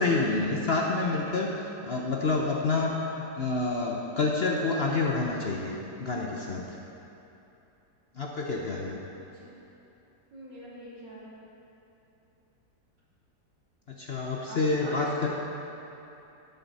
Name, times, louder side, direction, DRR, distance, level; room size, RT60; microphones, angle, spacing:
voice 1, 0.0-1.5 1.8-5.7 6.0-6.6 8.2-9.0 14.0-15.3, left 3 dB, 50° left, -2 dB, 0.8 m, -28 dB
voice 2, 9.2-9.5 10.3-11.3 14.5-15.1, equal, 85° right, -8 dB, 3.4 m, -43 dB
11.0 x 9.5 x 4.2 m, 2.9 s
omnidirectional pair, 1.9 m